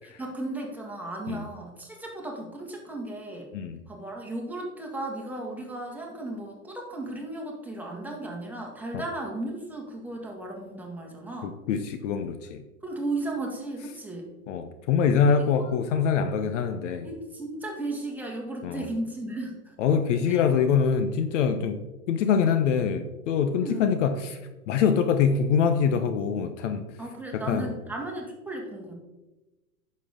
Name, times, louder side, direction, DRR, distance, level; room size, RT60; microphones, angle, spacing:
voice 1, 0.0-3.5 3.9-11.5 12.8-14.3 15.2-15.8 17.0-19.7 20.3-20.4 23.6-23.9 27.0-28.9, right 2 dB, 5° right, -1 dB, 2.0 m, -35 dB
voice 2, 11.4-12.6 14.5-17.1 18.6-18.9 19.8-21.8 22.1-24.4 24.7-26.8 27.3-27.7, left 6 dB, 55° left, 9 dB, 0.8 m, -24 dB
9.6 x 6.9 x 3.7 m, 1.1 s
figure-of-eight pair, 100°, 44 cm